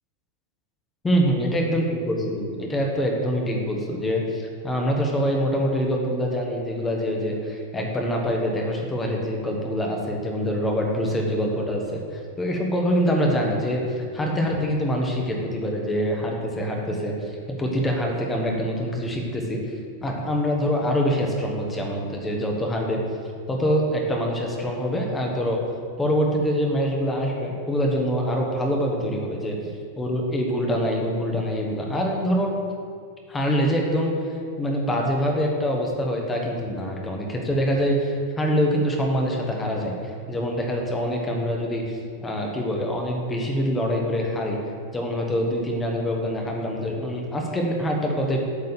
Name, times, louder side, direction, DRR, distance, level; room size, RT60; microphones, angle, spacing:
voice 1, 1.0-19.6 20.0-23.0 23.5-25.6 26.0-29.6 30.0-32.5 33.3-34.1 34.6-39.9 40.3-44.6 44.9-48.4, equal, 15° left, 0 dB, 1.3 m, -25 dB
8.3 x 4.1 x 6.9 m, 2.2 s
figure-of-eight pair, 90°, 0 cm